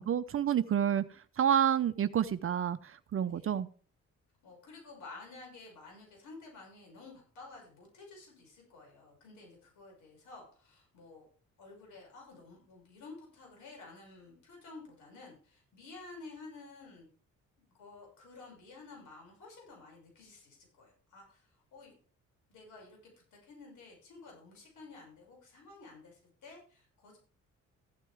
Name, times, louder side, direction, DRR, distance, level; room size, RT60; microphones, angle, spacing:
voice 1, 0.0-3.7, right 9 dB, 45° right, 11 dB, 0.7 m, -29 dB
voice 2, 4.4-11.2 11.6-17.1 17.6-21.9 22.5-23.0 23.3-27.2, left 3 dB, 80° left, 0 dB, 6.3 m, -52 dB
15.0 x 9.0 x 3.5 m, 0.41 s
cardioid pair, 90°, 30 cm